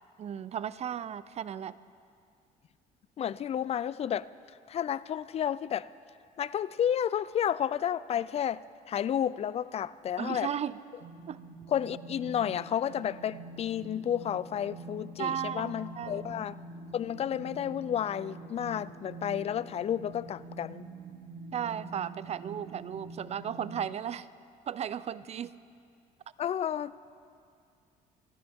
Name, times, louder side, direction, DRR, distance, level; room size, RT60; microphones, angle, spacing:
voice 1, 0.2-1.7 10.2-10.8 11.3-11.4 15.2-16.3 21.5-24.3 24.7-25.5, right 9 dB, 40° right, 17 dB, 0.5 m, -35 dB
voice 2, 3.2-4.3 4.7-5.9 6.4-8.6 8.9-10.5 11.7-16.6 16.9-20.8 26.4-27.0, left 9 dB, 40° left, 18 dB, 0.4 m, -31 dB
sound 1, 11.0-23.8, right 2 dB, 80° right, 1.1 m, -46 dB
28.5 x 11.0 x 3.6 m, 2.4 s
cardioid pair, 110°, 17 cm